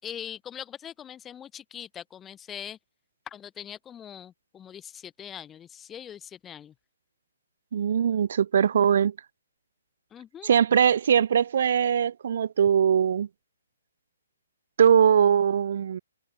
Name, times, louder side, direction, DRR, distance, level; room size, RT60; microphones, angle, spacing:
voice 1, 0.0-2.8 3.3-6.7 10.1-10.5, left 9 dB, 15° left, 5.8 m, -42 dB
voice 2, 7.7-9.1 10.4-13.3 14.8-16.0, right 8 dB, 60° right, 1.1 m, -21 dB
hypercardioid pair, 140°, 0 cm